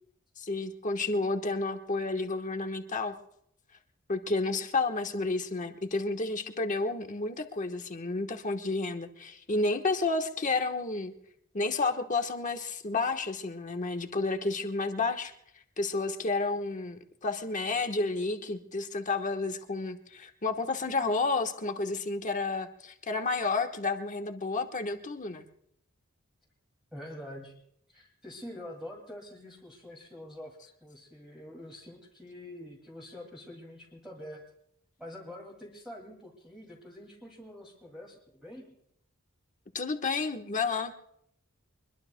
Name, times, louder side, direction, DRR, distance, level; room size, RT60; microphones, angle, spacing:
voice 1, 0.4-3.1 4.1-11.1 11.5-15.3 15.8-25.4 39.7-40.9, left 3 dB, 35° left, 6 dB, 1.2 m, -31 dB
voice 2, 26.9-27.6 27.9-34.4 35.0-38.7, left 1 dB, 5° right, -2 dB, 2.3 m, -46 dB
24.0 x 22.0 x 2.2 m, 0.73 s
head